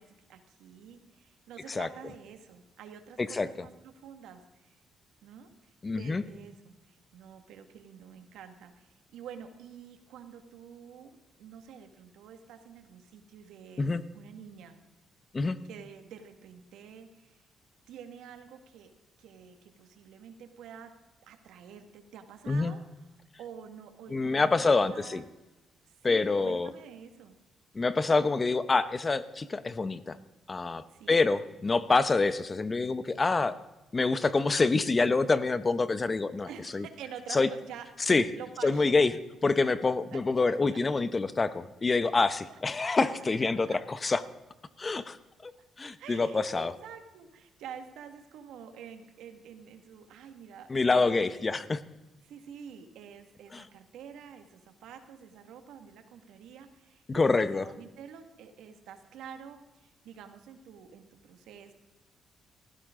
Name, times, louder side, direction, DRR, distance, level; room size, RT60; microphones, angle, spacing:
voice 1, 0.0-4.8 5.2-13.9 14.1-14.8 15.7-17.4 17.9-18.9 19.2-20.9 21.3-22.8 23.4-25.3 25.9-27.4 30.9-31.2 36.5-37.9 38.3-39.0 40.1-40.8 42.5-42.6 43.6-43.8 46.0-51.4 52.2-61.7, right 8 dB, 85° right, 7 dB, 1.8 m, -48 dB
voice 2, 5.8-6.2 13.8-14.0 15.3-15.6 22.5-22.8 24.1-25.2 26.0-26.7 27.7-30.2 30.5-33.6 33.9-36.9 37.3-37.5 38.1-38.3 38.6-39.1 39.4-44.2 44.8-45.2 45.4-45.5 45.8-46.7 50.7-51.8 53.5-53.6 57.1-57.7, left 3 dB, 30° left, 14 dB, 0.9 m, -26 dB
17.5 x 15.5 x 3.8 m, 1.0 s
cardioid pair, 90°, 0 cm